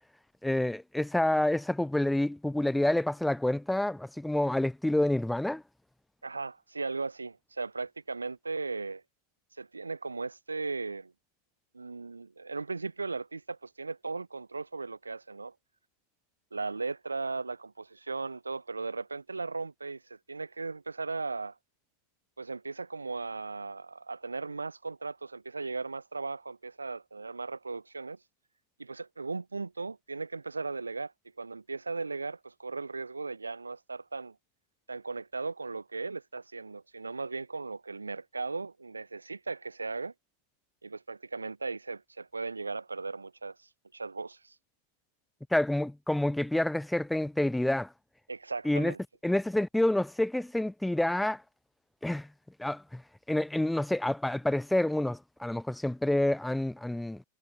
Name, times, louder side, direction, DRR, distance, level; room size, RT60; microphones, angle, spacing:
voice 1, 0.4-5.6 45.5-47.9 48.6-48.9 49.2-51.4 52.0-52.3 52.6-53.0 53.3-57.2, left 1 dB, 5° left, 0.4 m, -28 dB
voice 2, 6.2-9.0 9.6-11.1 11.7-15.5 16.5-21.6 22.4-28.2 28.8-31.1 31.4-34.4 34.9-40.1 40.8-44.6 48.3-49.0, right 3 dB, 80° right, 0.6 m, -37 dB
figure-of-eight pair, 90°, 0 cm